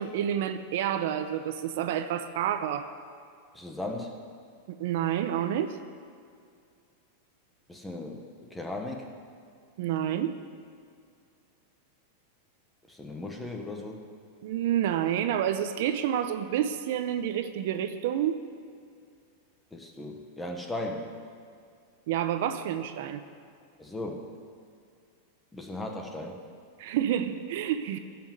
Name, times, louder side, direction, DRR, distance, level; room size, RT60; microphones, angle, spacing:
voice 1, 0.0-2.9 4.7-5.8 9.8-10.3 14.4-18.4 22.1-23.2 26.8-28.0, right 10 dB, 60° right, 9 dB, 0.7 m, -29 dB
voice 2, 3.5-4.1 7.7-8.2 8.5-9.1 12.9-14.0 19.7-21.1 23.8-24.2 25.5-26.4, left 2 dB, 5° left, 2 dB, 1.1 m, -37 dB
15.5 x 6.0 x 7.4 m, 2.3 s
supercardioid pair, 160°, 0 cm